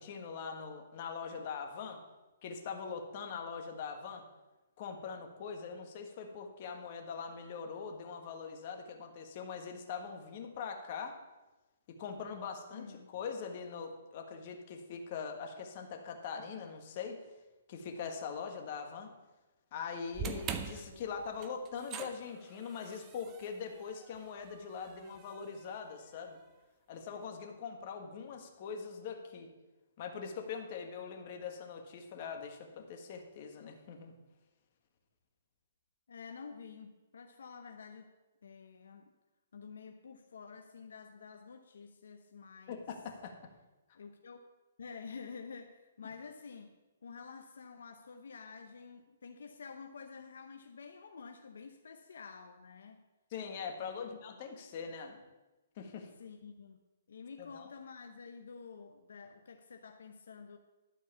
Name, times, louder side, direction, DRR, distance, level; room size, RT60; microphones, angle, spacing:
voice 1, 0.0-2.0 2.4-4.2 4.8-11.1 12.0-17.2 17.7-19.1 19.7-26.4 26.9-29.5 30.0-34.1 42.7-43.3 53.3-55.2 55.8-56.1 57.4-57.7, left 6 dB, 45° left, 3 dB, 1.4 m, -42 dB
voice 2, 12.7-13.1 36.1-38.1 38.4-39.1 39.5-42.8 43.9-44.4 44.8-46.7 47.0-53.0 53.8-54.1 56.2-56.8 57.1-60.6, left 5 dB, 80° left, 5 dB, 0.8 m, -49 dB
sound 1, 20.1-26.4, right 6 dB, 25° right, 0.7 m, -45 dB
11.5 x 4.6 x 7.0 m, 1.1 s
hypercardioid pair, 150°, 0 cm